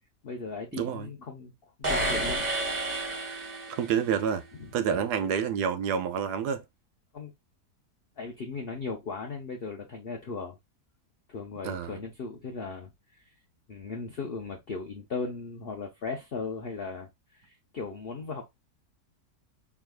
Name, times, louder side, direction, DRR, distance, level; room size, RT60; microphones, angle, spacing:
voice 1, 0.2-1.5 1.8-2.5 4.6-4.7 7.1-7.3 8.2-10.6 11.3-13.2 13.7-18.4, left 4 dB, 50° left, 0.8 m, -37 dB
voice 2, 0.8-1.1 3.8-4.4 4.7-6.6 11.6-12.0, right 7 dB, 85° right, 1.2 m, -28 dB
sound 1, 1.8-4.1, right 1 dB, 30° right, 1.3 m, -30 dB
4.7 x 3.2 x 2.3 m
omnidirectional pair, 1.7 m